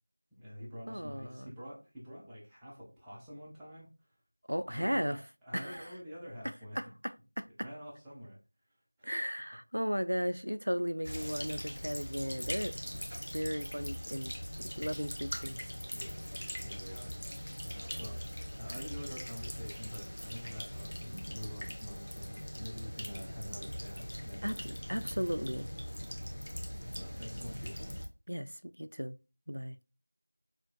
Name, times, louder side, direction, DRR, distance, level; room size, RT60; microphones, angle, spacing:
voice 1, 0.4-3.9 4.7-6.8 7.6-8.4 9.0-9.1 15.9-16.2 16.6-17.1 17.6-18.2 18.6-24.7 27.0-27.9, equal, ahead, 0.3 m, -46 dB
voice 2, 0.9-1.5 4.5-5.2 5.5-5.9 6.4-7.7 9.0-12.9 13.3-14.3 14.8-15.7 24.4-25.7 28.3-29.2 29.5-29.8, equal, 90° right, 0.4 m, -36 dB
sound 1, 11.0-28.1, equal, 50° left, 0.9 m, -41 dB
5.7 x 2.5 x 2.2 m
figure-of-eight pair, 180°, 0 cm